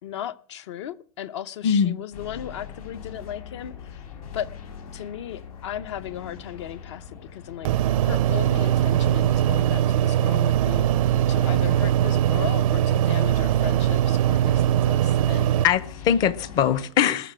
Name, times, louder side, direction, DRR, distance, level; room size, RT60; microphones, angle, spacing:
voice 1, 0.0-4.0 4.3-4.5 4.9-7.0 7.3-7.7 8.0-10.9 11.3-15.5, left 10 dB, 50° left, 0.8 m, -36 dB
voice 2, 1.6-2.0 15.6-17.3, left 8 dB, 20° left, 0.6 m, -21 dB
sound 1, 2.1-16.9, left 7 dB, 75° left, 5.9 m, -41 dB
sound 2, 7.6-15.6, right 12 dB, 65° right, 0.5 m, -21 dB
20.0 x 6.9 x 6.1 m
supercardioid pair, 180°, 19 cm